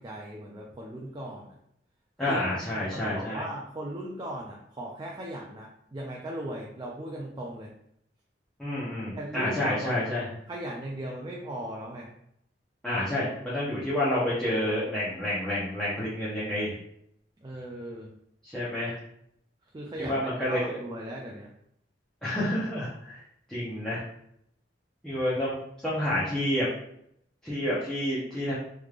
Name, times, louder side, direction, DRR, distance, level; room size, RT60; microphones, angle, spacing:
voice 1, 0.0-1.6 2.3-2.4 2.7-7.7 9.2-10.0 10.5-12.1 17.4-18.1 19.7-20.2 20.5-21.5, right 1 dB, 25° right, -2 dB, 0.4 m, -38 dB
voice 2, 2.2-3.4 8.6-10.3 12.8-16.8 18.4-19.0 20.0-20.8 22.2-23.2 23.5-24.0 25.0-25.6 25.8-26.7 27.4-28.5, left 1 dB, 5° left, -10 dB, 0.8 m, -29 dB
3.4 x 3.2 x 2.4 m, 0.73 s
head